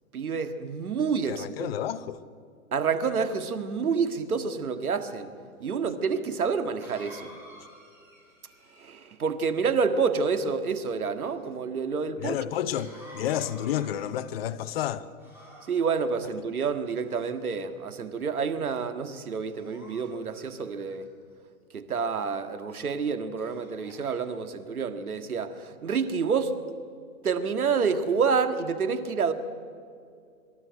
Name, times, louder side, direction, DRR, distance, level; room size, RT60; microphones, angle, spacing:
voice 1, 0.1-1.7 2.7-5.3 5.6-7.3 8.8-12.4 15.7-21.1 21.7-26.6 27.2-29.3, right 5 dB, 90° right, 1.9 m, -28 dB
voice 2, 1.3-2.2 12.2-15.1, left 10 dB, 45° left, 1.0 m, -30 dB
Cough, 5.7-5.8 6.8-9.2 12.7-14.5 15.2-16.1 16.8-17.5 18.1-18.4 19.4-21.0 22.7-22.9 23.4-24.2, equal, 5° right, 5.9 m, -51 dB
24.5 x 13.0 x 9.4 m
hypercardioid pair, 140°, 42 cm